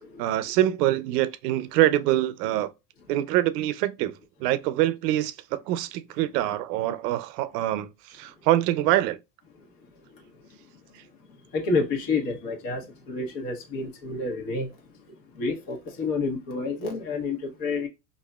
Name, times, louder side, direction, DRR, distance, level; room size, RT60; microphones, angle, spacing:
voice 1, 0.2-2.7 3.1-9.2, right 14 dB, 75° right, 0.7 m, -25 dB
voice 2, 11.5-14.7 15.4-17.9, left 3 dB, 45° left, 1.4 m, -29 dB
4.8 x 2.7 x 2.3 m
supercardioid pair, 145°, 49 cm